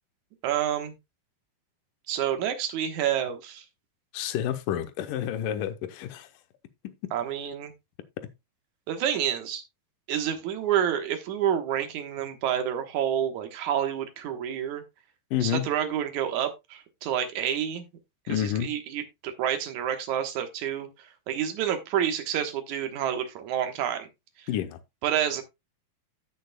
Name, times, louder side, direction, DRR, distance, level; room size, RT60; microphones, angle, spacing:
voice 1, 0.4-0.9 2.1-3.6 7.1-7.7 8.9-9.6 10.1-14.8 15.4-17.8 18.3-20.9 21.3-24.1 25.0-25.4, right 9 dB, 60° right, 2.2 m, -28 dB
voice 2, 4.1-6.3 6.8-6.9 15.3-15.7 18.3-18.7 24.5-24.8, left 10 dB, 70° left, 2.2 m, -29 dB
15.0 x 6.3 x 2.2 m
omnidirectional pair, 4.6 m